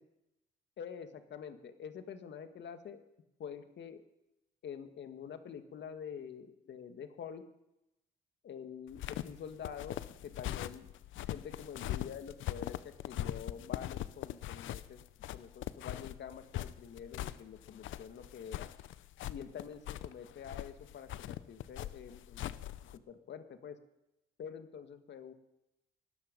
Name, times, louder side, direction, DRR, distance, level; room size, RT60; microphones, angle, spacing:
voice 1, 0.8-3.0 3.4-4.0 4.6-7.4 8.4-10.9 11.3-15.0 15.3-18.7 19.3-22.6 23.1-23.8 24.4-25.3, left 7 dB, 65° left, 9 dB, 1.8 m, -46 dB
sound 1, 8.9-23.0, left 13 dB, 80° left, 0.7 m, -41 dB
19.5 x 12.5 x 5.4 m, 0.89 s
cardioid pair, 90°, 20 cm